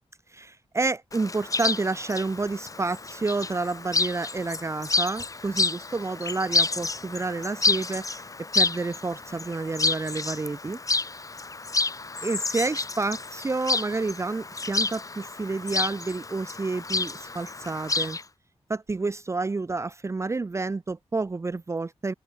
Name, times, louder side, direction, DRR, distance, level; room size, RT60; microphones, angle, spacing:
voice 1, 0.3-10.8 12.2-18.2 18.7-22.1, right 3 dB, 25° right, 0.7 m, -29 dB
Chirp tweet, 1.1-18.2, left 3 dB, 30° left, 2.6 m, -29 dB
wide cardioid pair, 160°, 11 cm